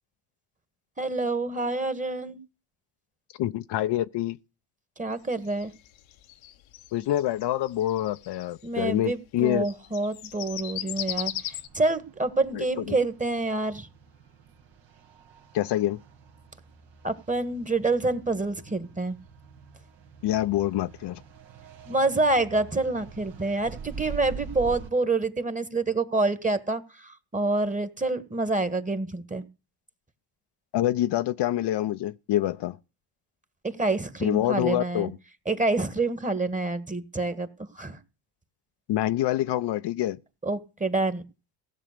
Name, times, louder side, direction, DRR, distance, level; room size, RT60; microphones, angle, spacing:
voice 1, 1.0-2.4 5.0-5.7 8.6-13.9 17.0-19.1 21.9-29.5 33.6-35.1 35.4-37.5 37.7-38.0 40.4-41.2, right 2 dB, 15° right, 1.6 m, -27 dB
voice 2, 3.4-4.4 6.9-9.7 12.5-12.9 15.5-16.0 20.2-21.2 30.7-32.8 34.2-35.2 38.9-40.2, left 13 dB, 60° left, 0.8 m, -26 dB
sound 1, 5.3-8.6 9.5-11.7, left 13 dB, 80° left, 1.2 m, -36 dB
sound 2, 10.4-24.9, right 5 dB, 65° right, 2.1 m, -45 dB
16.5 x 7.5 x 6.7 m
supercardioid pair, 75°, 45 cm